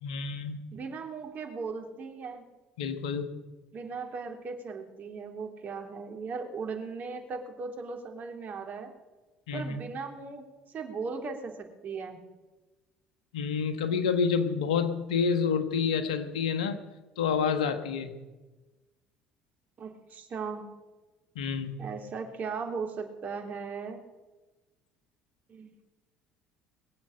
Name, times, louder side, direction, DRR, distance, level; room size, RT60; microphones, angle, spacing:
voice 1, 0.0-0.6 2.8-3.3 9.5-9.8 13.3-16.8 17.2-18.1 21.3-21.8, left 6 dB, 85° left, 9 dB, 1.3 m, -28 dB
voice 2, 0.7-2.4 3.7-8.9 9.5-12.2 19.8-20.7 21.8-24.0 25.5-25.7, right 5 dB, 50° right, 3 dB, 3.2 m, -38 dB
21.0 x 7.8 x 8.7 m, 1.2 s
hypercardioid pair, 60°, 4 cm